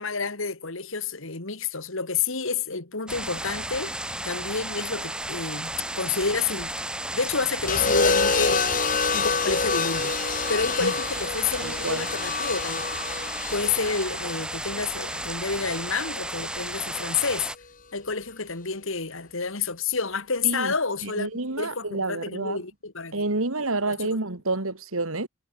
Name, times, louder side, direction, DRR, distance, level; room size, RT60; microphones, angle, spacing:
voice 1, 0.0-4.0 4.2-6.7 7.1-8.7 9.1-10.2 10.5-13.1 13.5-17.5 17.9-21.3 21.6-23.2 23.9-24.1, left 5 dB, 60° left, 2.2 m, -29 dB
sound 1, 3.1-17.6, right 1 dB, 5° right, 1.6 m, -33 dB
sound 2, 7.7-15.8 17.1-17.4, left 4 dB, 40° left, 3.6 m, -28 dB
voice 2, 11.6-12.1 20.4-20.7 21.0-22.6 23.1-25.3, right 2 dB, 70° right, 2.3 m, -29 dB
head